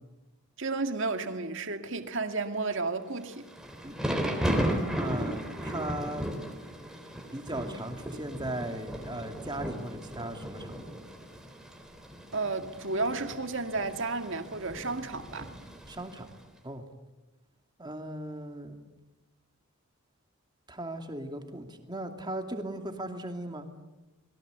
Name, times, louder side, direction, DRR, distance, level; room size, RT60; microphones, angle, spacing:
voice 1, 0.6-3.5 12.3-15.5, right 3 dB, 55° right, 2.2 m, -32 dB
Thunder / Rain, 3.3-16.3, equal, 5° right, 3.6 m, -36 dB
voice 2, 3.8-4.3 5.0-6.3 7.3-11.0 15.9-16.3 16.6-16.8 17.8-18.8 20.7-23.7, right 1 dB, 20° right, 2.6 m, -38 dB
29.5 x 22.5 x 8.3 m
head